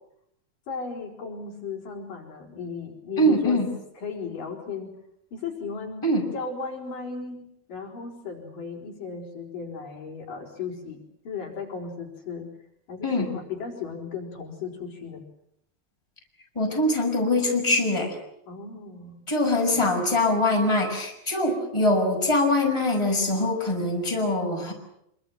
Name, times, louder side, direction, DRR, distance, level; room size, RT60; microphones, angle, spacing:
voice 1, 0.7-3.6 4.0-4.9 5.3-6.0 6.3-12.5 12.9-15.2 18.5-19.3 19.7-19.9, left 5 dB, 55° left, 0 dB, 6.1 m, -36 dB
voice 2, 3.2-3.7 6.0-6.3 13.0-13.3 16.5-18.2 19.3-24.7, left 1 dB, 5° left, 1 dB, 6.3 m, -23 dB
26.0 x 25.5 x 7.6 m, 0.75 s
omnidirectional pair, 4.6 m